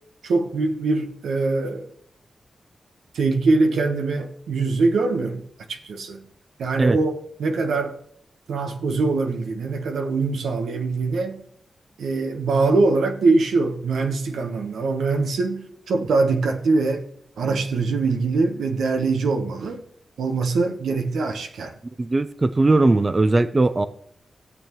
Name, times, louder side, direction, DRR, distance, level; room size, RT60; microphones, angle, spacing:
voice 1, 0.2-1.9 3.1-5.4 5.7-6.2 6.6-8.0 8.5-11.4 12.0-17.0 17.4-19.8 20.2-21.7, right 3 dB, 90° right, 1.2 m, -23 dB
voice 2, 22.0-23.9, right 2 dB, 40° right, 0.6 m, -19 dB
17.0 x 7.1 x 3.1 m
cardioid pair, 45°, 0 cm